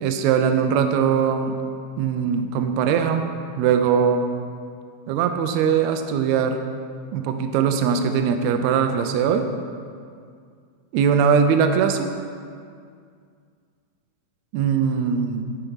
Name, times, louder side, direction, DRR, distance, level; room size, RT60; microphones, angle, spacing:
voice 1, 0.0-1.5 2.0-3.3 3.6-4.2 5.1-6.6 7.1-9.5 10.9-12.1 14.5-15.5, right 7 dB, 90° right, 6 dB, 1.6 m, -21 dB
8.8 x 4.6 x 5.5 m, 2.2 s
omnidirectional pair, 3.9 m